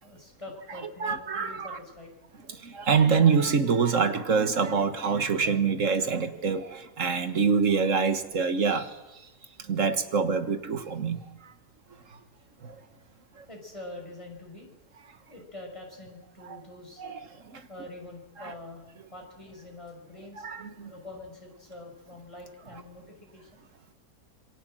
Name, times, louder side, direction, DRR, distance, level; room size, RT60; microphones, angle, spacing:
voice 1, 0.0-2.1 13.5-14.7 15.3-17.0 17.7-18.8 19.1-20.5 20.9-23.6, left 2 dB, 20° left, 5.7 m, -45 dB
voice 2, 1.0-1.8 2.5-9.3 9.6-11.5 12.1-12.2 12.6-12.8 13.4-13.5 16.5-16.6 17.0-17.7 18.4-18.5 20.4-20.9, right 5 dB, 65° right, 1.8 m, -26 dB
27.0 x 22.0 x 7.6 m
omnidirectional pair, 1.5 m